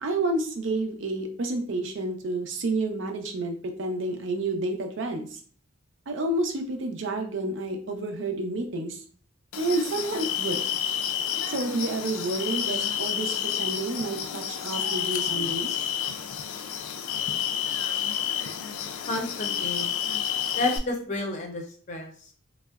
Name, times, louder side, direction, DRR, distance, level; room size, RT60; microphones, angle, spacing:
voice 1, 0.0-5.4 6.1-9.0 9.6-10.6 11.5-15.7, right 2 dB, 60° right, 4 dB, 0.5 m, -29 dB
sound 1, 9.5-20.8, left 9 dB, 85° left, 0.4 m, -30 dB
voice 2, 19.1-19.9 20.5-21.6 21.9-22.1, left 2 dB, 35° left, 2 dB, 0.5 m, -30 dB
3.5 x 2.0 x 2.3 m, 0.43 s
head